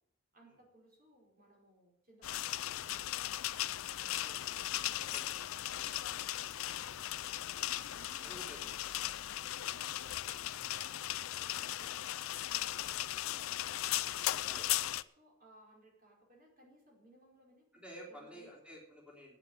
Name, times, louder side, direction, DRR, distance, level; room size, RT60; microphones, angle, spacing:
voice 1, 0.3-5.0 5.6-6.5 7.9-9.2 9.7-13.7 15.2-18.5, right 1 dB, 45° right, -2 dB, 4.9 m, -63 dB
sound 1, 2.2-15.0, left 13 dB, 80° left, 0.4 m, -37 dB
voice 2, 4.2-4.6 5.0-5.6 7.2-7.4 8.2-8.9 14.4-14.9 17.7-19.4, equal, 5° right, -2 dB, 3.4 m, -53 dB
9.6 x 9.3 x 9.0 m, 0.77 s
head